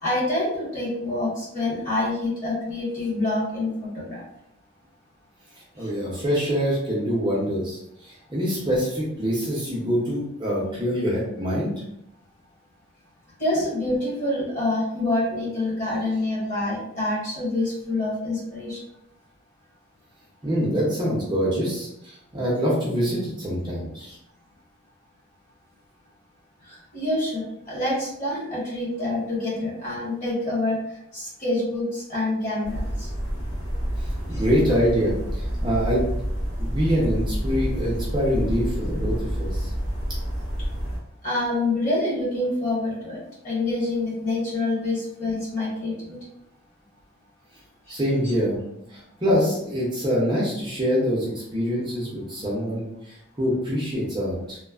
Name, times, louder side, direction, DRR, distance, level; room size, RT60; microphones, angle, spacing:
voice 1, 0.0-4.2 13.4-18.8 26.7-30.8 31.1-33.1 41.2-43.2 43.4-46.2, left 2 dB, 35° left, -7 dB, 1.3 m, -26 dB
voice 2, 5.7-11.7 20.4-24.2 34.0-36.1 36.6-39.7 47.9-48.6 48.9-54.6, equal, 20° right, -6 dB, 0.5 m, -25 dB
sound 1, 32.6-41.0, equal, 70° left, 1.2 m, -28 dB
3.1 x 2.1 x 2.3 m, 0.77 s
head